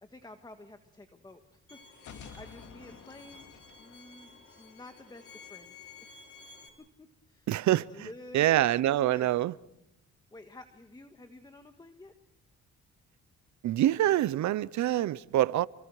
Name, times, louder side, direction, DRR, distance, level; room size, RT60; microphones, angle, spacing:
voice 1, 0.0-3.5 3.8-6.1 7.0-7.5 7.9-8.5 8.9-9.4 10.3-12.1, left 2 dB, 15° left, 1.6 m, -51 dB
Bowed string instrument, 1.7-6.7, left 4 dB, 45° left, 5.3 m, -53 dB
sound 1, 1.9-4.8, left 6 dB, 75° left, 2.5 m, -51 dB
voice 2, 7.5-8.1 8.3-9.5 13.6-15.7, right 13 dB, 70° right, 0.8 m, -25 dB
29.0 x 24.5 x 4.9 m
cardioid pair, 90°, 30 cm